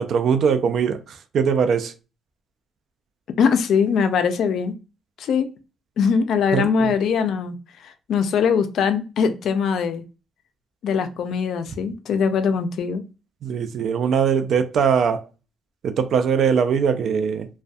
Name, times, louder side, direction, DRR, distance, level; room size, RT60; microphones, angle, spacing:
voice 1, 0.0-1.9 6.5-6.9 13.4-15.3 15.8-17.5, right 7 dB, 65° right, 0.3 m, -21 dB
voice 2, 3.4-4.7 5.2-5.5 6.0-7.6 7.8-10.0 10.8-13.0, left 6 dB, 70° left, 0.4 m, -21 dB
2.5 x 2.1 x 2.3 m
cardioid pair, 90°, 0 cm